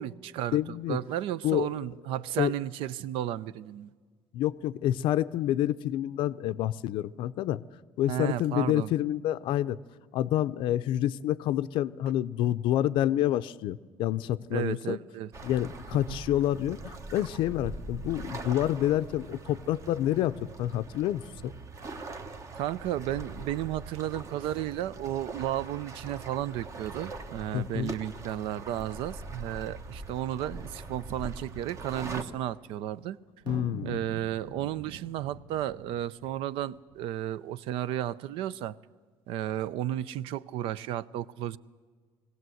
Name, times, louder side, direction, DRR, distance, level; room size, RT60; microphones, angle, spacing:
voice 1, 0.0-3.9 8.1-8.9 14.5-15.3 16.1-16.2 22.5-33.2 33.8-38.8 39.3-41.6, right 12 dB, 75° right, 0.6 m, -33 dB
voice 2, 0.5-1.0 1.4-1.7 2.4-2.5 4.3-7.6 8.0-9.8 10.1-15.0 15.4-21.5 27.5-27.9 33.5-34.0, left 12 dB, 65° left, 0.5 m, -28 dB
sound 1, 15.3-32.2, right 3 dB, 30° right, 1.1 m, -42 dB
sound 2, 33.4-37.0, right 6 dB, 55° right, 1.3 m, -45 dB
21.0 x 16.5 x 7.8 m
cardioid pair, 160°, 9 cm